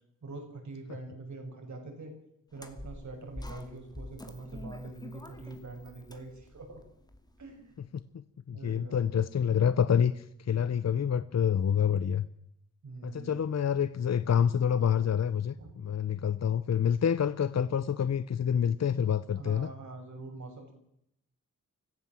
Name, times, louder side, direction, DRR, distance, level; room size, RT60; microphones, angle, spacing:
voice 1, 0.2-2.1 2.5-6.8 7.4-7.8 8.5-9.3 12.8-13.3 15.5-15.7 19.4-20.7, right 3 dB, 60° right, 3 dB, 6.7 m, -44 dB
sound 1, 2.5-7.8, left 1 dB, 10° left, 2.5 m, -46 dB
voice 2, 7.9-12.3 13.0-19.7, left 8 dB, 55° left, 14 dB, 0.8 m, -27 dB
25.0 x 15.0 x 7.7 m, 0.77 s
wide cardioid pair, 90°, 32 cm